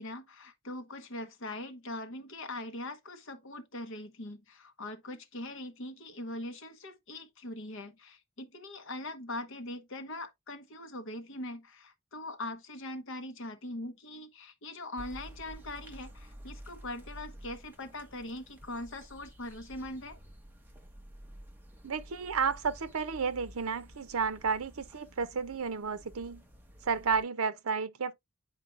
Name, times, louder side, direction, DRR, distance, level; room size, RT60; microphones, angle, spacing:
voice 1, 0.0-20.2, left 1 dB, 60° left, 1.1 m, -41 dB
sound 1, 15.0-27.2, equal, 10° right, 1.1 m, -51 dB
voice 2, 21.8-26.4 26.8-28.1, right 5 dB, 75° right, 0.6 m, -32 dB
8.9 x 4.5 x 2.4 m
head